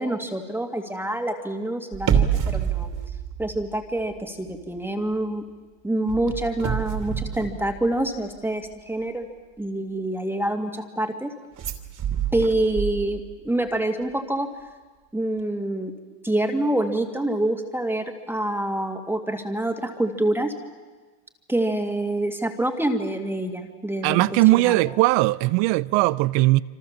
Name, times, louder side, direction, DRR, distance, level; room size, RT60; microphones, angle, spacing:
voice 1, 0.0-2.9 3.4-5.4 5.8-9.3 9.6-11.3 12.3-14.5 15.1-15.9 16.2-20.5 21.5-25.0, right 1 dB, 5° right, 2.2 m, -26 dB
sound 1, 1.9-4.2 4.5-4.8 6.1-8.3 11.6-13.5 13.7-13.8, right 8 dB, 40° right, 2.9 m, -27 dB
voice 2, 24.0-26.6, right 20 dB, 60° right, 0.8 m, -19 dB
27.0 x 26.5 x 7.3 m
supercardioid pair, 115°, 48 cm